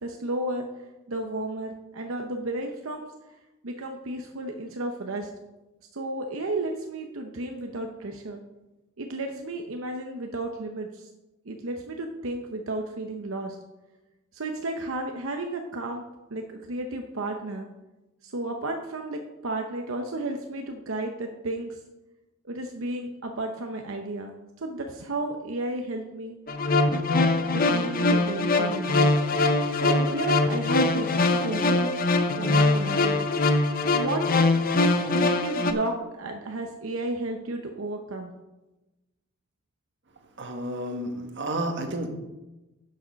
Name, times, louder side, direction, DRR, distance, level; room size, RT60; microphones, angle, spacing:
voice 1, 0.0-0.7 1.1-3.1 3.6-5.3 5.9-8.4 9.0-11.1 11.5-13.6 14.3-16.0 16.3-17.7 18.2-21.8 22.4-26.3 27.5-29.1 29.7-32.1 32.4-33.2 33.9-34.2 35.1-38.3, right 2 dB, 85° right, 4 dB, 0.9 m, -33 dB
sound 1, 26.5-35.7, left 2 dB, 45° left, 0.8 m, -23 dB
voice 2, 40.4-42.1, right 1 dB, 60° right, 4 dB, 1.4 m, -31 dB
11.0 x 6.5 x 5.2 m, 1.1 s
head